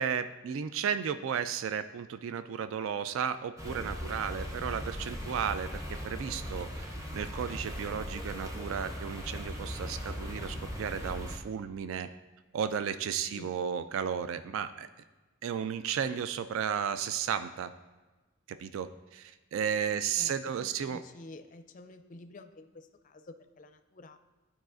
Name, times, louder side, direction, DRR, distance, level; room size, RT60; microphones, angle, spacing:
voice 1, 0.0-12.1 12.5-14.9 15.4-17.7 18.6-21.0, right 7 dB, 70° right, 12 dB, 0.3 m, -34 dB
sound 1, 3.3-3.7 5.8-8.4, equal, 35° right, 2.0 m, -52 dB
sound 2, 3.6-11.4, equal, 15° right, 0.7 m, -39 dB
voice 2, 20.2-24.2, left 2 dB, 40° left, 8 dB, 0.4 m, -50 dB
12.0 x 4.9 x 2.5 m, 1.2 s
head